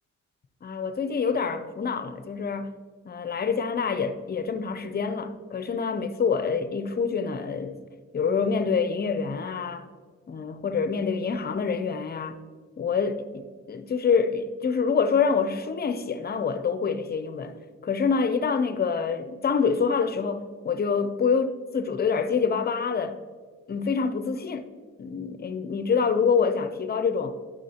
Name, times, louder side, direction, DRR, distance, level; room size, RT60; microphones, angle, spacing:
voice 1, 0.6-2.7 3.0-7.8 8.1-9.9 10.3-12.4 12.8-17.6 17.8-23.2 23.7-24.7 25.0-27.4, left 5 dB, 30° left, 0.6 m, -26 dB
10.5 x 6.3 x 2.9 m
cardioid pair, 90°, 30 cm